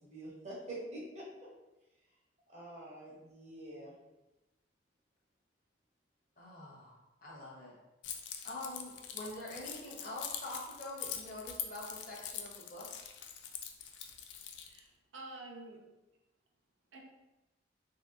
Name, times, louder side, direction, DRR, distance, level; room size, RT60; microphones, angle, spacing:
voice 1, 0.0-1.5 2.5-3.9, right 1 dB, 35° right, -5 dB, 0.9 m, -46 dB
voice 2, 6.4-7.7 8.4-12.9, left 1 dB, 50° left, -4 dB, 0.9 m, -45 dB
Keys jangling, 8.0-14.8, left 8 dB, 70° left, 0.3 m, -44 dB
voice 3, 14.7-15.8 16.9-17.0, right 2 dB, 80° right, 0 dB, 0.5 m, -49 dB
3.1 x 2.7 x 2.3 m, 1.0 s
head